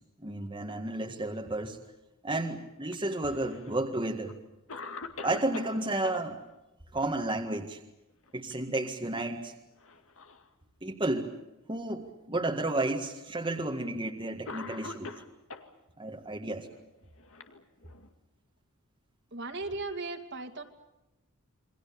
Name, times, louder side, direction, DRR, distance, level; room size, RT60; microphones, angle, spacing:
voice 1, 0.2-1.8 2.2-4.3 5.2-6.4 6.9-7.8 8.3-9.5 10.8-11.3 11.7-15.1 16.0-16.7, right 2 dB, 20° right, 2 dB, 1.8 m, -32 dB
Cough, 2.9-3.8 4.3-4.4 4.7-6.2 8.1-8.5 8.9-9.0 9.8-10.5 11.3-11.4 12.4-12.5 13.6-13.8 14.5-15.7 16.7-18.1, left 4 dB, 65° left, 2.2 m, -43 dB
voice 2, 19.3-20.6, right 3 dB, 50° right, 4 dB, 2.6 m, -37 dB
28.5 x 23.5 x 7.0 m, 0.94 s
head